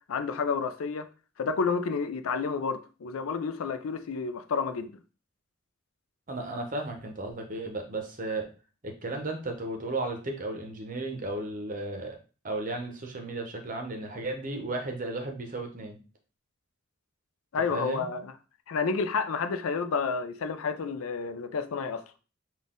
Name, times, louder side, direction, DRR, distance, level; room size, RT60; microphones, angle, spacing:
voice 1, 0.1-1.1 1.4-4.9 17.5-18.3 18.7-22.0, left 5 dB, 90° left, 0.5 m, -30 dB
voice 2, 6.3-8.5 8.8-12.2 12.4-16.0 17.7-18.1, right 2 dB, 40° right, 0.8 m, -34 dB
4.0 x 2.4 x 3.7 m
head